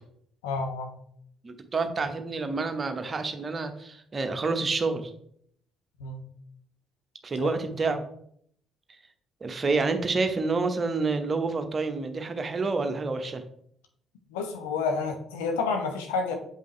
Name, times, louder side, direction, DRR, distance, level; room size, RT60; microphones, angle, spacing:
voice 1, 0.4-0.9 6.0-6.2 7.4-7.5 14.3-16.4, left 4 dB, 70° left, 4 dB, 0.9 m, -29 dB
voice 2, 1.4-5.1 7.2-8.1 9.4-13.4, right 3 dB, 35° right, 7 dB, 0.9 m, -28 dB
7.5 x 5.3 x 3.2 m, 0.67 s
figure-of-eight pair, 45°, 0 cm